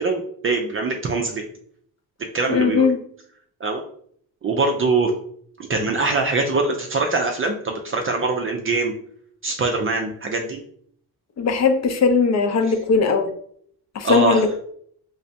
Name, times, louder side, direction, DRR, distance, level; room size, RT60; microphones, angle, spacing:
voice 1, 0.0-1.4 2.3-2.9 3.6-3.8 4.4-5.1 5.7-8.9 9.4-10.6 14.0-14.5, right 3 dB, 35° right, 2 dB, 0.5 m, -23 dB
voice 2, 2.5-3.0 11.4-13.3 14.0-14.6, left 4 dB, 45° left, 6 dB, 0.6 m, -19 dB
3.2 x 3.2 x 2.7 m, 0.63 s
cardioid pair, 95°, 38 cm